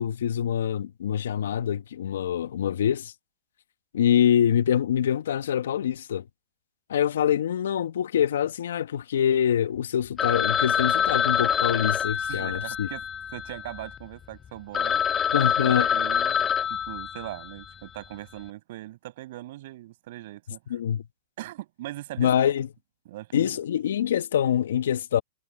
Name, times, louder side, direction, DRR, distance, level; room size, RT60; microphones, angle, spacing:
voice 1, 0.0-3.1 3.9-6.3 6.9-12.9 15.3-15.9 20.7-21.1 22.2-22.7 23.3-25.2, left 9 dB, 75° left, 1.5 m, -25 dB
Telephone, 10.2-14.0 14.4-14.5 14.7-17.6, left 8 dB, 20° left, 0.4 m, -26 dB
voice 2, 12.2-13.0 13.3-15.0 15.6-20.8 21.4-22.5 23.1-23.6, right 16 dB, 55° right, 7.3 m, -40 dB
hypercardioid pair, 130°, 0 cm